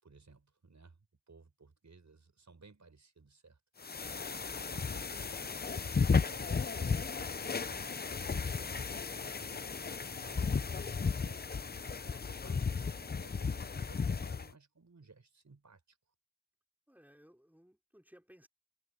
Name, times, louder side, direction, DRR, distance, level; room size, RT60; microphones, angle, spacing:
voice 1, 0.0-1.0 1.3-8.0 8.4-16.0, right 4 dB, 60° right, 5.7 m, -60 dB
sound 1, 3.8-14.5, left 5 dB, 30° left, 0.5 m, -34 dB
voice 2, 16.9-18.5, equal, 5° right, 5.0 m, -61 dB
wide cardioid pair, 80°, 33 cm